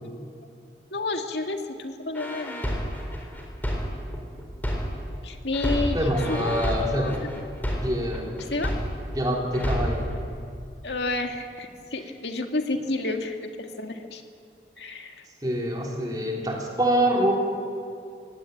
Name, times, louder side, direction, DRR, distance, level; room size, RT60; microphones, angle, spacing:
voice 1, 0.9-2.9 5.2-6.0 6.3-7.3 8.5-8.7 10.8-14.2 14.8-15.2, left 2 dB, 80° left, 4 dB, 2.0 m, -30 dB
sound 1, 2.1-5.2 5.5-9.2 9.5-10.1, equal, 10° left, 4.0 m, -29 dB
voice 2, 5.9-7.2 7.8-8.4 9.1-10.1 15.4-17.3, equal, 20° right, -1 dB, 3.2 m, -25 dB
25.0 x 17.5 x 9.2 m, 2.3 s
head